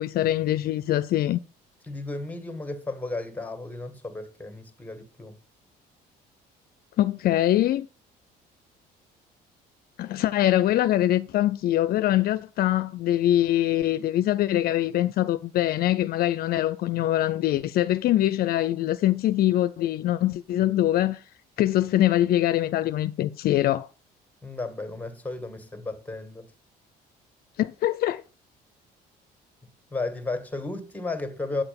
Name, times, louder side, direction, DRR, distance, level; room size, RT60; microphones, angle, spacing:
voice 1, 0.0-1.4 7.0-7.9 10.0-21.2 21.6-23.9 27.6-28.2, left 13 dB, 65° left, 0.5 m, -23 dB
voice 2, 1.9-5.4 24.4-26.5 29.9-31.6, left 2 dB, 10° left, 1.9 m, -34 dB
8.6 x 6.9 x 5.3 m
cardioid pair, 110°, 17 cm